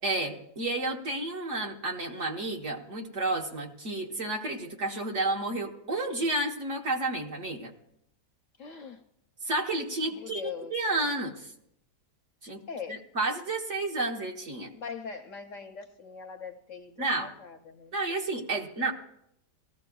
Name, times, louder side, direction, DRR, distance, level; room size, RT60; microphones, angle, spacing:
voice 1, 0.0-7.7 9.4-11.5 12.4-12.6 12.9-14.7 17.0-17.3 17.9-18.9, right 2 dB, 50° right, 1 dB, 1.3 m, -31 dB
voice 2, 8.6-9.0 10.1-10.7 12.7-13.1 14.7-18.0, left 6 dB, 60° left, 3 dB, 0.9 m, -41 dB
19.0 x 14.5 x 2.3 m, 0.74 s
omnidirectional pair, 1.8 m